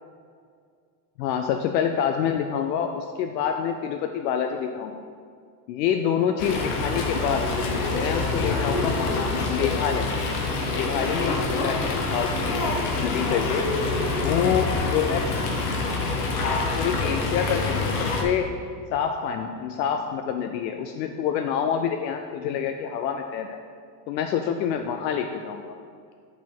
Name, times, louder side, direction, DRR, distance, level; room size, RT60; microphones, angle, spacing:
voice 1, 1.2-5.0 5.7-7.5 7.9-10.1 10.6-13.7 14.2-15.2 16.7-18.5 18.9-23.6 24.1-25.6, left 8 dB, 90° left, 5 dB, 0.6 m, -27 dB
Fowl, 6.4-18.2, left 3 dB, 65° left, 1.1 m, -26 dB
8.2 x 4.3 x 4.5 m, 2.1 s
supercardioid pair, 175°, 49 cm